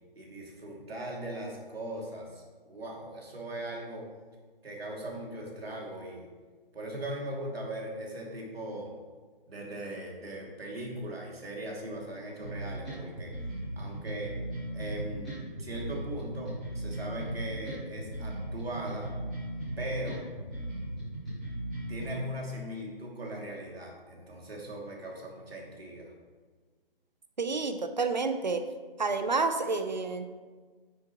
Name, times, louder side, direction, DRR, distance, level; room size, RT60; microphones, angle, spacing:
voice 1, 0.2-4.1 4.6-6.3 6.7-8.9 9.5-13.4 13.8-14.3 14.7-19.2 19.8-20.2 21.9-26.1, right 1 dB, 85° right, -2 dB, 2.6 m, -39 dB
sound 1, 12.4-22.0, right 1 dB, ahead, 2.6 m, -37 dB
voice 2, 27.4-28.6 29.0-30.3, right 4 dB, 50° right, 8 dB, 0.6 m, -29 dB
9.4 x 7.5 x 3.0 m, 1.4 s
hypercardioid pair, 180°, 30 cm